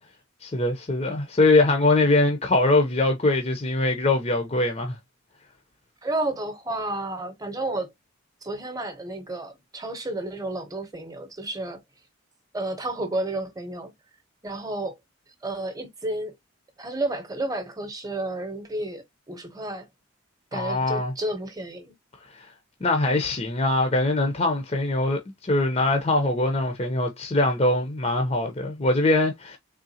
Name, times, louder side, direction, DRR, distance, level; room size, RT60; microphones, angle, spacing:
voice 1, 0.4-5.0 20.5-21.1 22.3-22.5 22.8-29.6, left 2 dB, 30° left, 0.7 m, -22 dB
voice 2, 6.0-7.9 8.4-11.8 12.5-13.9 14.4-15.0 15.4-16.3 16.8-19.9 20.5-21.9, right 2 dB, 15° right, 0.9 m, -31 dB
3.7 x 3.5 x 2.7 m
head